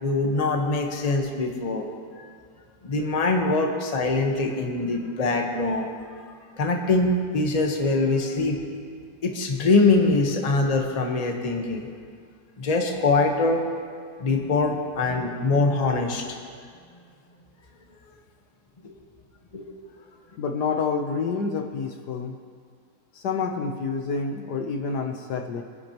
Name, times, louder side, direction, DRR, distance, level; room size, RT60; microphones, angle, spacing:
voice 1, 0.0-1.9 2.2-2.3 2.8-6.0 6.3-8.7 9.2-11.9 12.6-13.6 14.2-16.2 18.8-18.9 19.5-19.7, left 3 dB, 25° left, 2 dB, 1.1 m, -23 dB
voice 2, 20.4-22.4 23.1-25.6, left 5 dB, 70° left, 4 dB, 1.4 m, -28 dB
24.0 x 10.5 x 3.0 m, 2.1 s
omnidirectional pair, 2.0 m